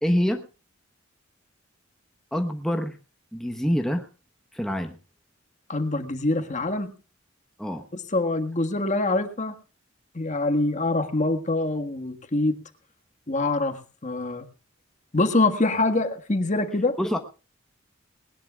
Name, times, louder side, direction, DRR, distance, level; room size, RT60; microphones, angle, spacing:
voice 1, 0.0-0.4 2.3-2.9 3.3-4.1 4.5-5.0 7.6-7.9 17.0-17.2, equal, 5° left, 4 dB, 1.1 m, -25 dB
voice 2, 5.7-6.9 7.9-9.5 10.1-12.6 13.3-14.4 15.1-17.0, left 2 dB, 40° left, 7 dB, 1.6 m, -25 dB
20.5 x 18.5 x 2.3 m, 0.33 s
head